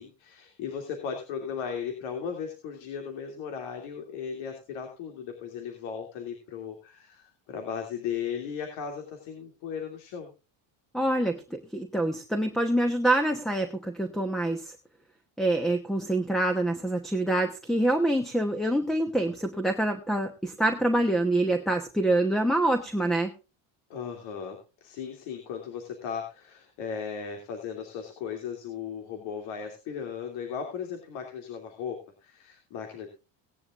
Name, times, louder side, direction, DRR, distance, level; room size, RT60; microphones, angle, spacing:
voice 1, 0.0-10.3 23.9-33.1, left 7 dB, 80° left, 4 dB, 2.9 m, -36 dB
voice 2, 10.9-14.7 15.4-23.3, right 1 dB, ahead, 7 dB, 1.0 m, -26 dB
18.0 x 10.5 x 2.5 m, 0.29 s
cardioid pair, 150°, 49 cm